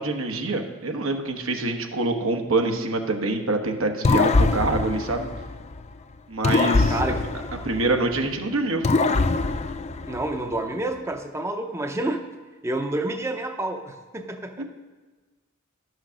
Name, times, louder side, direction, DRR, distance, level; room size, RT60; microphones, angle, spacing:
voice 1, 0.0-5.3 6.3-7.0 7.6-8.8 14.6-14.7, right 2 dB, 85° right, 4 dB, 1.2 m, -25 dB
sound 1, 4.0-5.9 6.4-8.3 8.8-10.6, left 3 dB, 30° left, 0.4 m, -23 dB
voice 2, 6.9-7.2 10.1-12.2 12.6-14.6, right 1 dB, 15° right, 5 dB, 0.6 m, -29 dB
11.5 x 6.3 x 6.2 m, 1.3 s
head